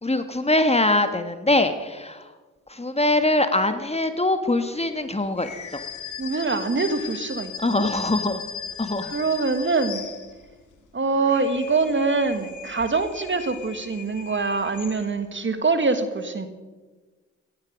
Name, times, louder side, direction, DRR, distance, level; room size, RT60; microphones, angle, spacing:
voice 1, 0.0-2.2 2.7-5.5 7.6-8.4 8.8-9.1, left 2 dB, 20° left, 9 dB, 1.5 m, -23 dB
sound 1, 5.4-10.6 11.1-15.3, left 8 dB, 60° left, 1.7 m, -38 dB
voice 2, 6.2-7.9 9.0-10.1 10.9-16.5, right 4 dB, 35° right, 9 dB, 1.8 m, -24 dB
16.5 x 12.0 x 5.2 m, 1.3 s
hypercardioid pair, 45°, 34 cm